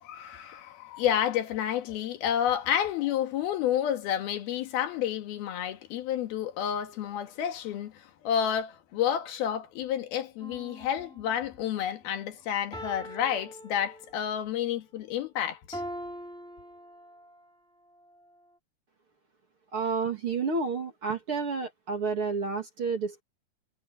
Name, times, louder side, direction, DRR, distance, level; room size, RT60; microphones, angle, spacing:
voice 1, 0.0-15.8, left 10 dB, 80° left, 3.6 m, -30 dB
sound 1, 10.4-11.7 12.7-14.4 15.7-17.4 18.1-18.2, equal, ahead, 4.0 m, -43 dB
voice 2, 19.7-23.2, right 4 dB, 40° right, 2.3 m, -30 dB
omnidirectional pair, 4.4 m